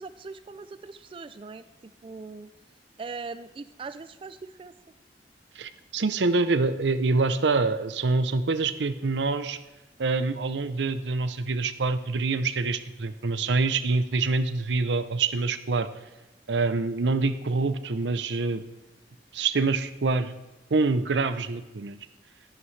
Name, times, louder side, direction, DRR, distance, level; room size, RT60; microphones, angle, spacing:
voice 1, 0.0-2.5 3.0-4.7, right 4 dB, 30° right, 12 dB, 0.3 m, -41 dB
voice 2, 5.6-9.6 10.0-15.9 16.5-18.6 19.3-20.3 20.7-22.0, right 3 dB, 85° right, 12 dB, 0.6 m, -26 dB
12.5 x 11.0 x 3.3 m, 1.1 s
head